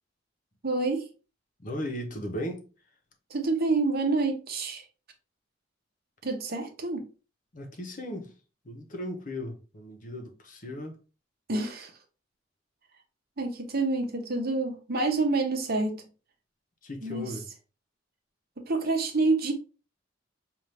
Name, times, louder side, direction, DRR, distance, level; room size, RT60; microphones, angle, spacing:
voice 1, 0.6-1.1 3.3-4.8 6.2-7.1 11.5-11.9 13.4-16.0 17.0-17.3 18.6-19.5, right 3 dB, 55° right, 1.0 m, -27 dB
voice 2, 1.6-2.7 7.5-8.3 8.6-11.0 16.8-17.5, equal, 45° left, 1.0 m, -36 dB
5.4 x 2.6 x 3.3 m
head